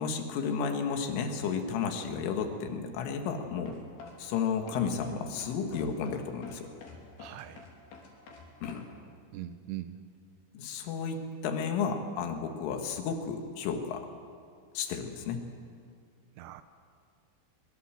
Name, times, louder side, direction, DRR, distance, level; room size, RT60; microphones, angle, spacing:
voice 1, 0.0-3.8 4.2-6.7 8.6-8.9 10.5-14.1 14.7-15.4, left 6 dB, 85° left, 5 dB, 4.2 m, -32 dB
sound 1, 3.7-8.8, left 4 dB, 60° left, 5.1 m, -49 dB
voice 2, 7.2-7.7 9.3-10.0 16.4-16.6, right 13 dB, 75° right, 10 dB, 2.6 m, -41 dB
24.0 x 22.5 x 7.6 m, 2.2 s
omnidirectional pair, 5.6 m